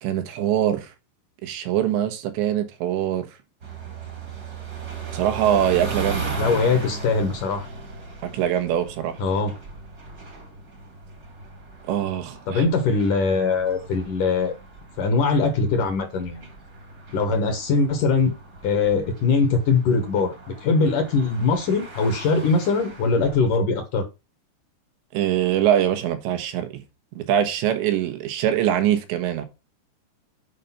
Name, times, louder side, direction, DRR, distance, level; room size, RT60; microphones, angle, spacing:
voice 1, 0.0-0.9 1.4-3.3 5.1-6.3 8.2-9.2 11.9-12.7 25.1-26.8 27.2-29.5, right 10 dB, 85° right, 3.5 m, -23 dB
sound 1, 3.6-23.5, right 4 dB, 40° right, 1.4 m, -37 dB
voice 2, 6.4-7.7 9.2-9.5 12.5-14.5 15.0-16.5 17.1-18.3 18.6-20.3 20.6-24.0, left 4 dB, 60° left, 2.4 m, -21 dB
8.4 x 5.3 x 5.7 m
omnidirectional pair, 5.0 m